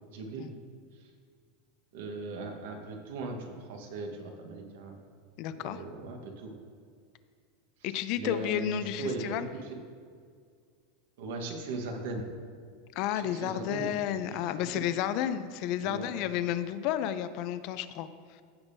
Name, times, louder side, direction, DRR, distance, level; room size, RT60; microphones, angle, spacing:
voice 1, 0.1-0.5 0.9-1.1 1.9-5.0 5.5-6.5 7.8-9.8 11.2-12.3 13.1-14.8 15.8-16.1, right 3 dB, 80° right, 3 dB, 1.3 m, -39 dB
voice 2, 5.4-5.8 7.8-9.5 13.0-18.1, left 11 dB, 50° left, 12 dB, 0.5 m, -31 dB
15.5 x 5.3 x 2.7 m, 2.1 s
supercardioid pair, 140°, 0 cm